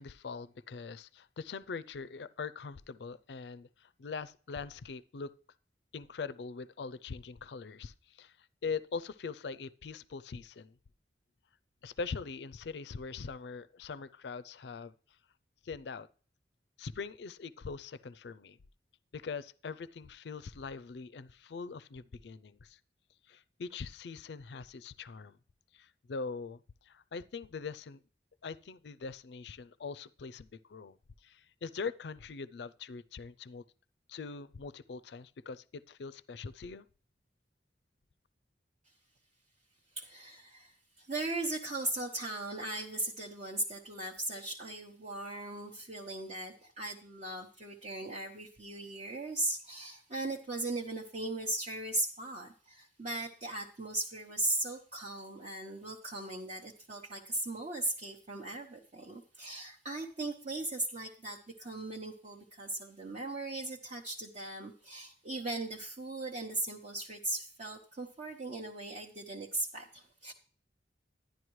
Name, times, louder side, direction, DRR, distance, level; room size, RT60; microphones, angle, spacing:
voice 1, 0.0-5.3 5.9-10.8 11.8-14.9 15.6-16.1 16.8-18.6 19.1-22.8 23.3-25.4 25.7-28.0 28.4-33.6 34.1-36.9, left 5 dB, 70° left, 0.4 m, -42 dB
voice 2, 40.0-40.7 41.0-70.3, right 2 dB, 45° right, 0.9 m, -38 dB
11.0 x 10.5 x 3.1 m
head